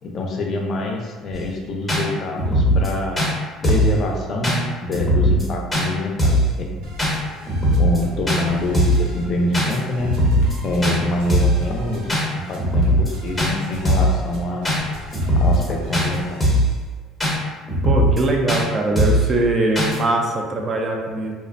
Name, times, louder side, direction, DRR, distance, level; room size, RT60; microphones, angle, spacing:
voice 1, 0.0-3.3 3.6-6.8 7.7-10.2 10.6-14.7 15.3-16.5, left 1 dB, 40° left, 0 dB, 0.4 m, -25 dB
sound 1, 1.3-1.4 1.9-2.0 2.4-2.9 3.2-3.3 3.6-3.9 4.4-4.6 4.9-5.4 5.7-5.9 6.2-6.5 7.0-7.1 7.5-8.0 8.3-8.4 8.7-9.1 9.5-9.8 10.0-10.6 10.8-11.0 11.3-11.6 12.1-12.2 12.6-13.1 13.4-13.5 13.8-14.2 14.6-14.8 15.1-15.7 15.9-16.1 16.4-16.7 17.2-17.3 17.7-18.2 18.5-18.6 19.0-19.3 19.8-20.0, equal, 5° left, 0.7 m, -18 dB
sound 2, 6.8-16.4, left 1 dB, 80° right, 0.5 m, -37 dB
voice 2, 17.9-21.3, right 2 dB, 30° right, 1 dB, 0.3 m, -21 dB
2.4 x 2.0 x 2.4 m, 1.4 s
cardioid pair, 135°, 0 cm